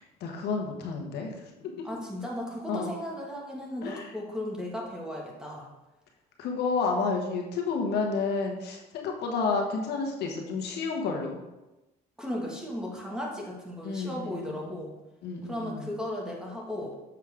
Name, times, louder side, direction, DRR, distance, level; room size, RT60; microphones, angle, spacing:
voice 1, 0.2-1.9 2.7-2.9 3.8-4.1 6.4-11.4 13.8-14.7 15.2-15.9, left 4 dB, 75° left, 2 dB, 1.3 m, -31 dB
voice 2, 1.8-5.7 12.2-15.0 15.4-17.0, left 1 dB, 5° right, -2 dB, 1.8 m, -36 dB
7.4 x 6.4 x 3.6 m, 1.0 s
cardioid pair, 110°, 17 cm